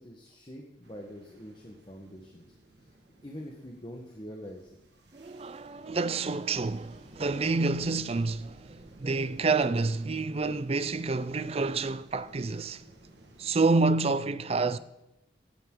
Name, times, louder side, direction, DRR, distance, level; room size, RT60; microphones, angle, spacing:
voice 1, 0.0-2.4 3.2-4.7, equal, 25° left, 1.3 m, -44 dB
sound 1, 0.8-13.7, right 1 dB, 70° right, 1.7 m, -54 dB
voice 2, 5.1-12.8 13.4-14.8, right 3 dB, 35° right, 0.5 m, -28 dB
17.0 x 10.5 x 3.9 m
head